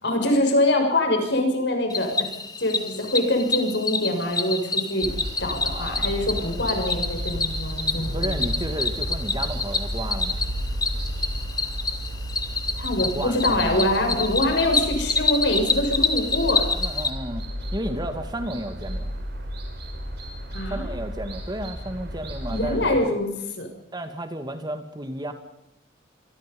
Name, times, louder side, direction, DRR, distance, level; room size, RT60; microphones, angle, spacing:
voice 1, 0.0-2.3 2.6-5.1 5.4-8.4 12.8-16.7 20.5-20.9 22.5-23.3 23.6-23.7, left 1 dB, 65° left, 4 dB, 6.6 m, -24 dB
Cricket, 1.9-17.1, left 4 dB, 20° left, 2.1 m, -27 dB
sound 1, 5.0-22.9, equal, 60° right, 6.5 m, -33 dB
voice 2, 5.7-6.6 7.8-10.4 13.0-14.2 16.7-17.4 17.7-19.2 20.7-23.2 23.9-25.3, right 1 dB, 20° right, 8 dB, 2.3 m, -33 dB
27.0 x 22.0 x 5.5 m, 0.87 s
head